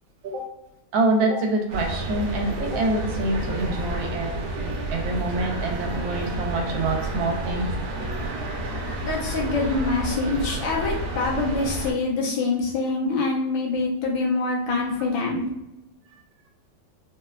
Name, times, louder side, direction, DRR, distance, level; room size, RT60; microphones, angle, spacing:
voice 1, 0.9-4.3 4.6-7.7 13.0-13.1 14.7-15.5, right 2 dB, 85° right, 2 dB, 1.3 m, -26 dB
sound 1, 1.7-11.9, right 1 dB, 70° right, 1.1 m, -30 dB
voice 2, 9.1-15.4, left 3 dB, 75° left, -2 dB, 1.4 m, -25 dB
3.6 x 2.1 x 2.3 m, 0.88 s
omnidirectional pair, 2.0 m